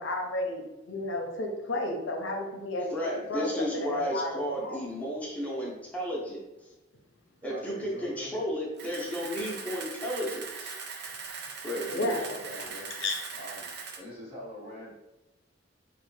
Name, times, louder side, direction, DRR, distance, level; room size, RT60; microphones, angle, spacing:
voice 1, 0.0-2.9 3.3-4.8 11.9-12.3 13.0-13.1, left 2 dB, 70° left, 1 dB, 0.6 m, -32 dB
voice 2, 2.9-6.4 7.4-10.7 11.6-12.2, equal, 10° left, -4 dB, 0.7 m, -33 dB
voice 3, 7.4-8.3 12.3-12.9 13.4-13.7 14.0-14.9, left 1 dB, 30° right, -5 dB, 1.1 m, -43 dB
Camera, 8.8-14.0, right 5 dB, 60° right, 0.4 m, -40 dB
3.1 x 2.1 x 3.1 m, 1.0 s
head